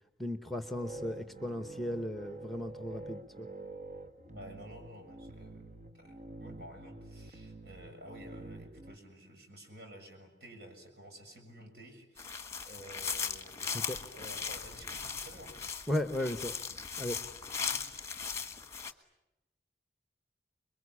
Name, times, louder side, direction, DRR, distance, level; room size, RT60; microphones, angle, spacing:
voice 1, 0.2-3.5 13.9-14.0 15.9-16.5 17.0-17.2, left 1 dB, ahead, 9 dB, 1.0 m, -36 dB
sound 1, 0.5-9.0, right 2 dB, 40° right, 1.0 m, -47 dB
voice 2, 4.3-5.7 5.9-15.5 17.5-17.8, right 1 dB, 65° right, 3 dB, 7.1 m, -52 dB
sound 2, 12.2-18.9, left 6 dB, 15° left, 1.3 m, -38 dB
27.0 x 22.5 x 9.8 m, 0.89 s
head